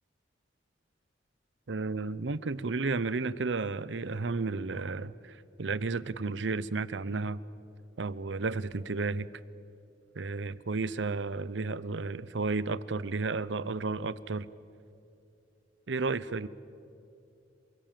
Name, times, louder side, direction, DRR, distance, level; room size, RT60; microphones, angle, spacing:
voice 1, 1.7-7.4 8.0-9.3 10.2-14.5 15.9-16.5, right 3 dB, 80° right, 17 dB, 0.7 m, -32 dB
28.5 x 22.0 x 7.6 m, 2.6 s
head